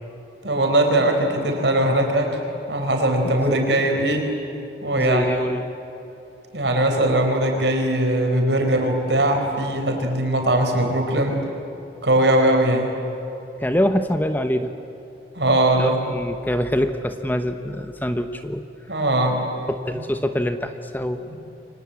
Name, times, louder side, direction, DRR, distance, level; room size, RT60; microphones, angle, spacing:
voice 1, 0.4-4.3 4.8-5.2 6.5-11.4 12.0-12.9 15.3-16.0 18.9-19.4 21.3-21.4, right 1 dB, 75° right, 3 dB, 4.9 m, -20 dB
voice 2, 5.0-5.6 13.6-14.7 15.7-18.6 19.7-21.3, equal, 10° left, 8 dB, 1.0 m, -24 dB
29.0 x 24.5 x 8.5 m, 2.9 s
head